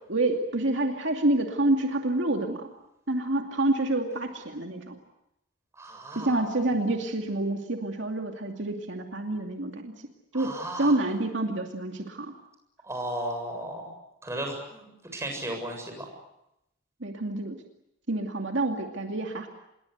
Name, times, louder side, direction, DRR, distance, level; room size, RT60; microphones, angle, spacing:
voice 1, 0.1-2.7 3.1-5.0 6.1-9.9 10.3-12.3 17.0-17.6 18.1-19.5, right 2 dB, 70° right, 3 dB, 2.5 m, -28 dB
voice 2, 5.8-6.4 10.3-11.0 12.8-13.9 14.2-16.1, right 1 dB, 15° right, 2 dB, 7.4 m, -35 dB
27.0 x 22.5 x 8.1 m, 0.84 s
head